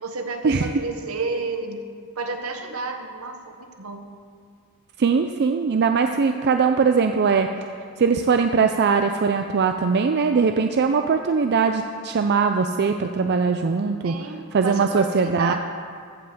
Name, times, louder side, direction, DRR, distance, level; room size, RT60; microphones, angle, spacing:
voice 1, 0.0-1.8 2.2-4.0 14.0-15.6, right 3 dB, 75° right, 5 dB, 1.1 m, -31 dB
voice 2, 5.0-7.5 8.0-15.6, right 5 dB, 50° right, 6 dB, 0.4 m, -21 dB
15.5 x 5.7 x 6.7 m, 2.1 s
head